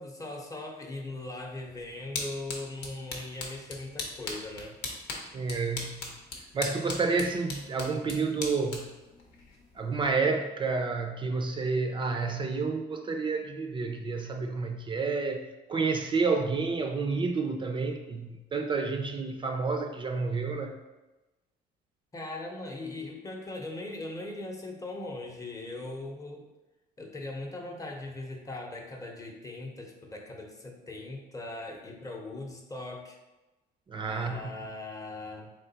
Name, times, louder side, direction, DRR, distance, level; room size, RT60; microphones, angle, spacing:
voice 1, 0.0-4.8 22.1-26.5 27.0-33.2 34.1-35.5, left 2 dB, 20° left, 2 dB, 0.7 m, -40 dB
sound 1, 1.5-10.2, left 3 dB, 90° left, 0.9 m, -40 dB
voice 2, 5.3-6.1 6.5-8.9 9.8-20.7 33.9-34.4, right 4 dB, 30° right, 5 dB, 0.4 m, -30 dB
3.8 x 3.3 x 4.0 m, 1.1 s
cardioid pair, 110°, 17 cm